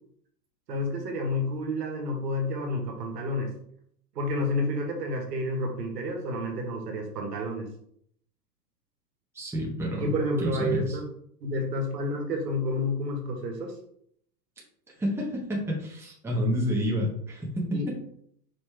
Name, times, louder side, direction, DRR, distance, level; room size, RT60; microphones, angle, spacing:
voice 1, 0.7-3.5 4.1-7.7 10.0-11.1 11.4-13.7 17.7-17.9, left 1 dB, 75° right, 1 dB, 1.5 m, -30 dB
voice 2, 9.3-10.1 10.4-11.0 15.0-17.5, equal, 5° right, -3 dB, 1.1 m, -29 dB
4.9 x 3.2 x 3.3 m, 0.68 s
hypercardioid pair, 110°, 50 cm